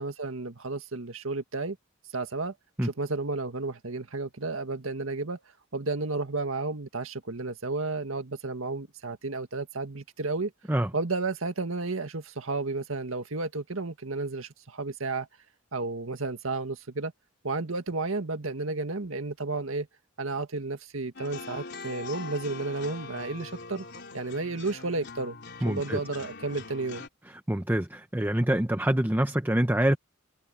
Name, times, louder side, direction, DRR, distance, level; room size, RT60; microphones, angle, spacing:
voice 1, 0.0-1.8 2.1-2.5 2.8-5.4 5.7-10.5 10.9-15.3 15.7-17.1 17.4-19.9 20.2-23.9 24.1-25.4 25.7-27.0, right 3 dB, 75° right, 1.9 m, -32 dB
sound 1, 21.2-27.1, left 4 dB, 55° left, 4.1 m, -42 dB
voice 2, 25.6-26.0 27.5-30.0, right 1 dB, 10° right, 0.8 m, -25 dB
head